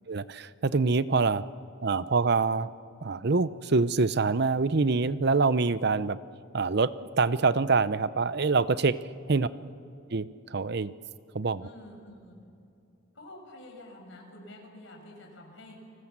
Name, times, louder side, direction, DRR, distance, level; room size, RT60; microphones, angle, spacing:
voice 1, 0.1-1.4 1.8-2.7 3.0-6.2 6.5-9.0 9.3-9.5 10.1-10.9 11.3-11.7, right 4 dB, 55° right, 15 dB, 0.6 m, -25 dB
voice 2, 11.6-12.4 13.1-15.8, left 1 dB, 70° left, 1 dB, 6.2 m, -48 dB
30.0 x 19.5 x 7.4 m, 2.7 s
head